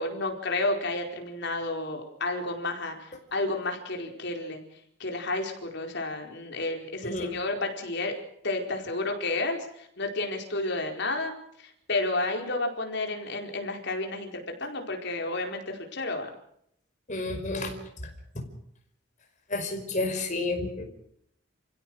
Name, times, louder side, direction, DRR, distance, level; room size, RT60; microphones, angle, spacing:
voice 1, 0.0-4.6 5.0-8.2 8.4-11.3 11.6-14.3 14.6-16.3, left 2 dB, 55° left, 3 dB, 4.7 m, -31 dB
voice 2, 7.0-7.3 17.1-17.7 18.0-18.5 19.5-20.9, left 2 dB, 35° left, 3 dB, 5.2 m, -31 dB
29.0 x 16.0 x 6.5 m, 0.72 s
head